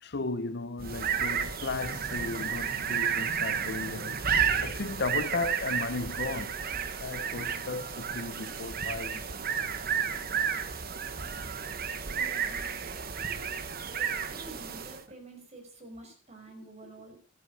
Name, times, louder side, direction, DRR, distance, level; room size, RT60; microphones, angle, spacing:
voice 1, 0.0-4.2 4.6-6.7 7.0-9.3, left 3 dB, 55° left, 0.7 m, -35 dB
sound 1, 0.8-15.1, right 7 dB, 50° right, 1.3 m, -32 dB
voice 2, 12.1-12.7 13.1-17.2, right 2 dB, 35° right, 5.4 m, -49 dB
12.5 x 11.5 x 5.5 m
head